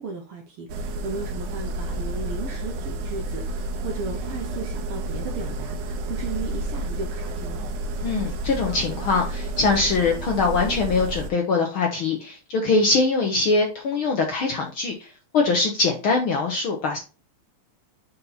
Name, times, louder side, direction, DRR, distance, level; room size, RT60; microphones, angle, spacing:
voice 1, 0.0-7.6, right 4 dB, 65° right, 3 dB, 1.5 m, -35 dB
sound 1, 0.7-11.3, right 1 dB, 85° right, 2.2 m, -30 dB
voice 2, 8.0-17.0, left 3 dB, 65° left, 2 dB, 1.3 m, -23 dB
5.7 x 4.2 x 3.9 m, 0.34 s
omnidirectional pair, 3.4 m